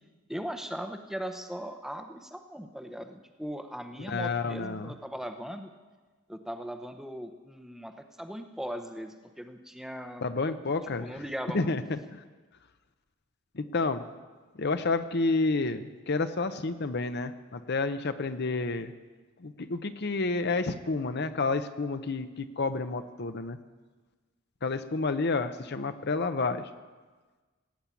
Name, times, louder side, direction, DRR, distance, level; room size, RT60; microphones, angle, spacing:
voice 1, 0.3-5.7 6.3-10.3 11.0-11.8, equal, ahead, 7 dB, 0.7 m, -39 dB
voice 2, 4.0-5.0 10.2-11.2 11.5-12.2 13.5-14.0 14.5-18.9 19.4-23.6 24.6-26.7, left 3 dB, 50° left, 10 dB, 0.7 m, -30 dB
17.5 x 8.7 x 8.3 m, 1.3 s
head